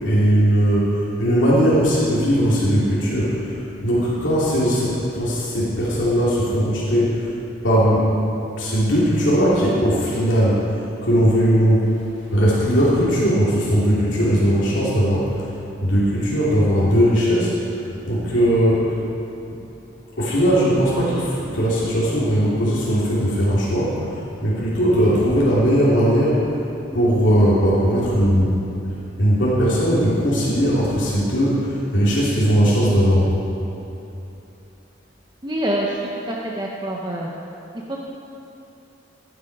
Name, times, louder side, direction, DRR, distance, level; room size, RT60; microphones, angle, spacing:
voice 1, 0.0-3.4 3.8-7.2 7.6-8.1 8.6-10.6 11.0-11.9 12.3-15.3 15.8-17.5 18.1-18.9 20.2-24.0 24.4-26.4 26.9-28.6 29.2-33.3, equal, 70° left, -8 dB, 3.0 m, -18 dB
voice 2, 35.4-36.0 36.3-37.3 37.9-38.1, right 1 dB, 20° right, -3 dB, 0.9 m, -26 dB
16.5 x 10.0 x 4.8 m, 2.9 s
head